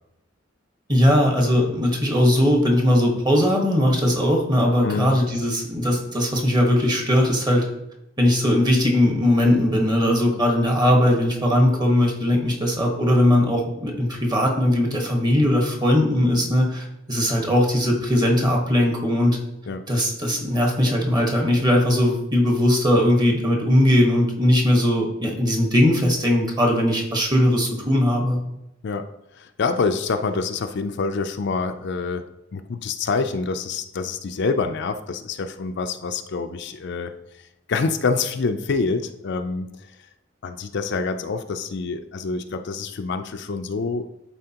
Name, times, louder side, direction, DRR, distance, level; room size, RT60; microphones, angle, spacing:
voice 1, 0.9-7.6 8.2-19.4 19.9-28.4, left 1 dB, 20° right, 1 dB, 1.3 m, -19 dB
voice 2, 4.8-5.1 19.7-19.8 28.8-29.1 29.3-32.2 32.5-37.1 37.7-39.9 40.4-44.1, left 4 dB, 60° left, 8 dB, 0.4 m, -26 dB
11.5 x 4.2 x 2.9 m, 0.85 s
head